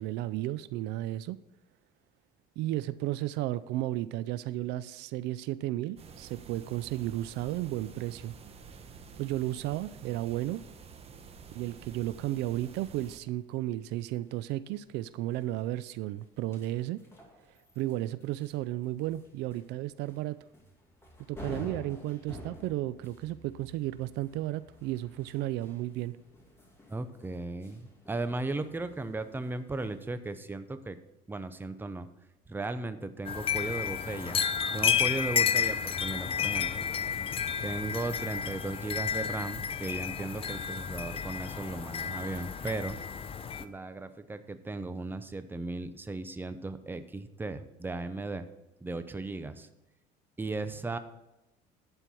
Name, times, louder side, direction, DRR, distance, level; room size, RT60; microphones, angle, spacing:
voice 1, 0.0-1.4 2.6-8.3 9.2-10.6 11.5-17.0 17.8-20.4 21.3-26.2, right 15 dB, 75° right, 16 dB, 0.4 m, -33 dB
sound 1, 6.0-13.2, right 5 dB, 35° right, 1.0 m, -50 dB
sound 2, 11.2-30.2, left 1 dB, 15° left, 2.4 m, -52 dB
voice 2, 26.9-31.0 31.3-32.1 32.5-34.5 34.7-36.9 37.6-43.0 43.6-48.5 48.8-49.7 50.4-51.0, right 3 dB, 10° right, 10 dB, 0.7 m, -36 dB
sound 3, 33.3-43.6, left 7 dB, 30° left, 0.6 m, -31 dB
11.0 x 4.6 x 6.9 m, 0.94 s
cardioid pair, 115°, 18 cm